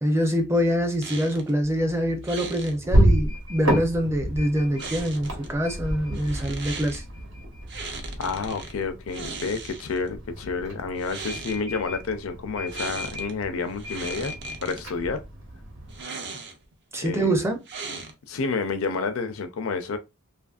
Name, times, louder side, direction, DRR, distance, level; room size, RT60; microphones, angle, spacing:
voice 1, 0.0-7.0 16.9-17.6, equal, 15° right, 0.5 m, -25 dB
sound 1, 1.0-1.5 2.2-2.7 4.8-5.5 6.1-7.0 7.7-8.7 9.1-10.1 10.9-11.6 12.7-13.3 13.7-14.8 15.9-16.7 17.6-18.4, right 4 dB, 55° right, 0.6 m, -38 dB
sound 2, 1.6-16.0, equal, 70° right, 1.1 m, -30 dB
voice 2, 8.2-14.3 14.6-15.2 17.0-17.3 18.3-20.0, left 4 dB, 85° left, 0.5 m, -29 dB
2.8 x 2.5 x 2.4 m
head